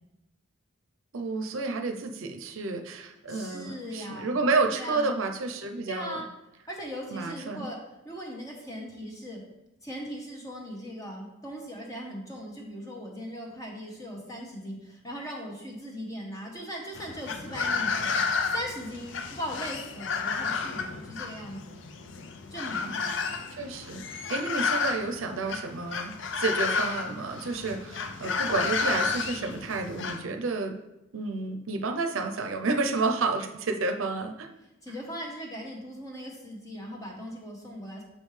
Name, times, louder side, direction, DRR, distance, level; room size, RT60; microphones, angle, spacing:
voice 1, 1.1-6.2 7.1-7.7 23.5-30.7 31.1-34.5, right 3 dB, 80° right, 6 dB, 0.6 m, -30 dB
voice 2, 3.3-4.4 4.7-5.2 5.9-6.3 6.7-9.4 9.8-17.9 18.5-21.8 22.5-23.1 34.8-38.0, equal, 15° left, -1 dB, 1.0 m, -39 dB
sound 1, 16.9-30.2, left 4 dB, 65° left, 0.5 m, -31 dB
6.6 x 5.3 x 3.2 m, 0.93 s
head